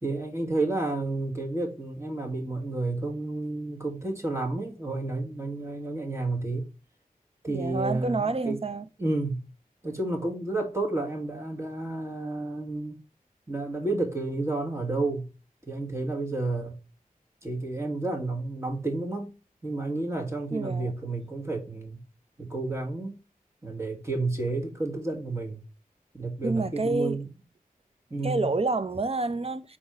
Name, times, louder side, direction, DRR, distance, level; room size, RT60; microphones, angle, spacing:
voice 1, 0.0-6.7 7.4-8.6 9.0-9.4 9.8-13.0 13.5-15.3 15.7-16.8 17.4-19.3 19.6-22.0 22.4-23.2 23.6-25.6 26.1-27.3 28.1-28.5, right 2 dB, 20° right, 1.9 m, -31 dB
voice 2, 7.5-8.9 20.5-20.9 26.4-27.2 28.2-29.8, right 3 dB, 40° right, 0.6 m, -28 dB
4.5 x 4.0 x 5.1 m
wide cardioid pair, 50°, 15 cm